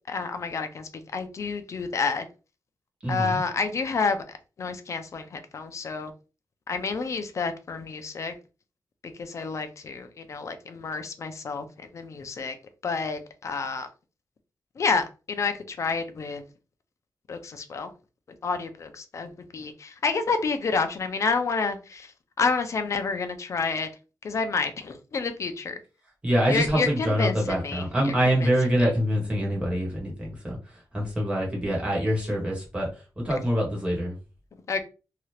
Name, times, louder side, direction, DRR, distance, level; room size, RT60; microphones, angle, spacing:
voice 1, 0.1-2.3 3.1-4.2 4.6-6.1 6.7-8.3 9.2-12.6 12.8-13.9 14.8-16.4 17.3-17.9 18.4-22.1 22.4-23.9 24.2-25.8 26.5-28.5 34.7-34.8, left 4 dB, 45° left, 0.5 m, -29 dB
voice 2, 3.0-3.4 26.2-30.6 30.9-32.9 33.2-34.1, equal, 15° right, 1.3 m, -25 dB
2.8 x 2.4 x 3.2 m
wide cardioid pair, 180°, 7 cm